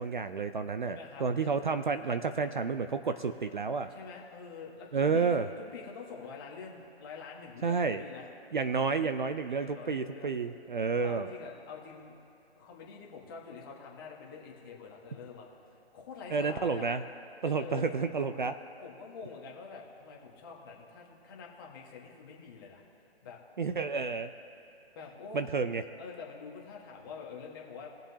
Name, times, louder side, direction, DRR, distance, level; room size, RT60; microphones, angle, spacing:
voice 1, 0.0-3.9 4.9-5.5 7.6-8.0 8.5-11.3 16.3-17.0 17.4-18.5 23.6-24.3 25.3-25.8, right 5 dB, 45° right, 10 dB, 0.5 m, -30 dB
voice 2, 0.9-1.5 3.9-8.3 9.6-10.4 11.0-12.1 12.6-15.5 15.9-16.9 17.5-17.9 18.3-18.5 18.8-22.8 23.2-23.4 24.9-25.5 26.0-27.9, left 5 dB, 20° left, -2 dB, 1.5 m, -46 dB
21.0 x 7.2 x 2.8 m, 2.7 s
hypercardioid pair, 165°, 33 cm